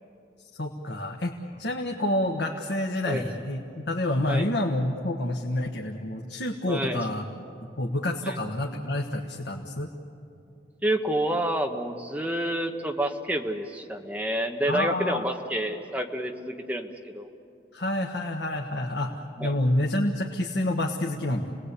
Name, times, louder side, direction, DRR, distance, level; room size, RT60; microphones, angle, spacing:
voice 1, 0.6-7.2 7.8-9.9 14.7-15.3 17.7-21.5, left 1 dB, 85° left, 1 dB, 1.5 m, -28 dB
voice 2, 6.7-7.0 8.3-8.4 10.8-17.3 19.4-19.5, right 1 dB, 10° right, 4 dB, 1.3 m, -29 dB
29.0 x 20.0 x 8.4 m, 2.7 s
head